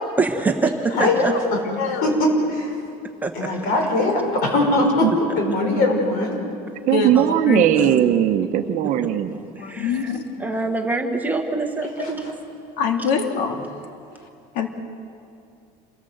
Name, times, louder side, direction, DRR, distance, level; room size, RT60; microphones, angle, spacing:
voice 1, 0.2-1.4 3.2-3.6 7.1-7.3 8.8-9.0 9.3-10.1 10.4-12.3, right 3 dB, 10° right, 3 dB, 1.2 m, -25 dB
voice 2, 1.0-1.3 2.0-2.7 3.3-6.5 11.8-12.1, left 2 dB, 60° left, 2 dB, 6.2 m, -21 dB
voice 3, 1.8-2.1 6.9-7.1 7.4-8.0 9.6-10.5 12.8-13.6 14.5-14.7, left 6 dB, 90° left, 4 dB, 2.3 m, -24 dB
voice 4, 6.9-9.3, right 11 dB, 45° right, 8 dB, 1.0 m, -19 dB
28.0 x 18.0 x 7.9 m, 2.5 s
cardioid pair, 175°, 17 cm